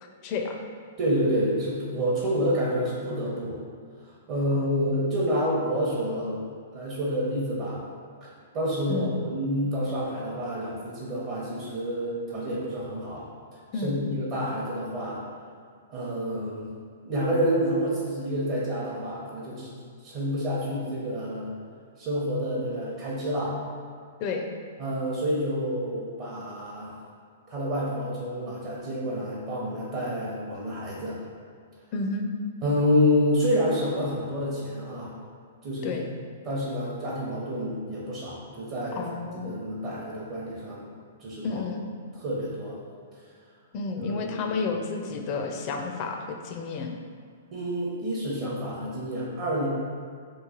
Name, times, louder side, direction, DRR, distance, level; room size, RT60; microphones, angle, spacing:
voice 1, 0.0-0.6 4.5-4.7 8.9-9.2 13.7-14.0 24.2-24.5 31.9-32.3 35.8-36.0 38.9-39.6 41.4-41.8 43.7-47.0, left 4 dB, 40° left, 3 dB, 0.4 m, -31 dB
voice 2, 1.0-3.6 4.0-6.4 6.7-7.8 8.2-8.3 8.5-13.2 13.5-15.2 15.9-16.7 17.0-19.7 20.0-21.5 22.0-23.5 24.8-27.0 27.5-31.2 32.6-35.1 35.6-36.0 36.4-39.1 39.4-40.8 41.2-41.6 42.1-42.8 44.0-44.5 47.5-49.7, equal, 45° right, -7 dB, 0.7 m, -28 dB
3.1 x 2.3 x 3.7 m, 2.2 s
hypercardioid pair, 120°, 0 cm